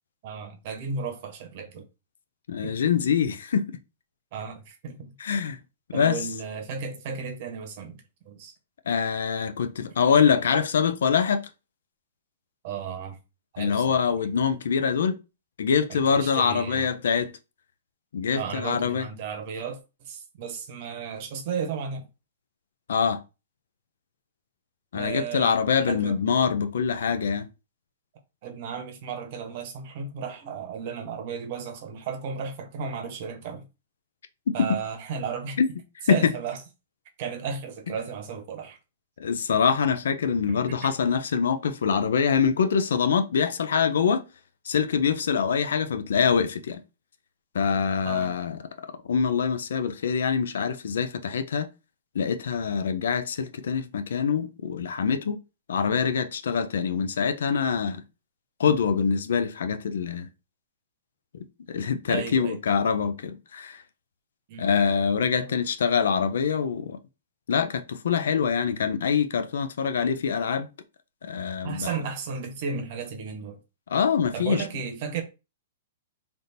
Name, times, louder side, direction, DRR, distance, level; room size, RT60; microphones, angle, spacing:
voice 1, 0.2-1.8 2.6-2.7 4.3-5.1 5.9-8.5 12.6-13.2 13.5-14.1 15.9-16.9 18.3-22.1 24.9-26.2 28.4-33.7 34.5-35.6 36.1-36.6 37.2-38.8 40.5-40.9 48.0-48.4 62.1-62.6 64.5-64.8 65.4-65.6 71.6-73.6 74.3-75.2, right 6 dB, 45° right, 0.9 m, -34 dB
voice 2, 2.5-3.8 5.2-5.6 5.9-6.2 8.9-11.4 13.6-15.2 15.6-17.4 18.1-19.1 22.9-23.2 24.9-27.5 35.6-35.7 36.1-36.3 39.2-44.3 44.7-46.8 47.5-48.6 49.1-51.7 52.1-55.4 55.7-58.0 58.6-60.3 61.7-63.8 64.6-67.0 67.5-70.7 71.2-71.9 73.9-74.6, left 6 dB, 80° left, 0.5 m, -24 dB
3.5 x 2.6 x 4.1 m
hypercardioid pair, 160°, 0 cm